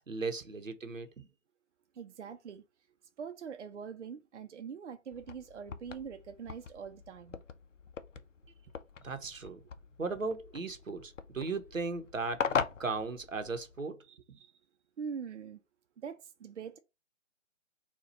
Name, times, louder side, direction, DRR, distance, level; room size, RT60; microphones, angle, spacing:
voice 1, 0.1-1.3 9.0-9.6 10.0-12.4 12.8-14.0 14.3-14.4, right 4 dB, 90° right, 0.9 m, -37 dB
voice 2, 1.9-2.6 3.2-7.4 8.2-8.3 9.0-9.5 14.0-14.6 15.0-15.6 16.0-16.8, right 6 dB, 65° right, 0.6 m, -44 dB
sound 1, 5.1-13.8, left 6 dB, 70° left, 0.6 m, -40 dB
4.3 x 2.3 x 4.0 m
figure-of-eight pair, 140°, 38 cm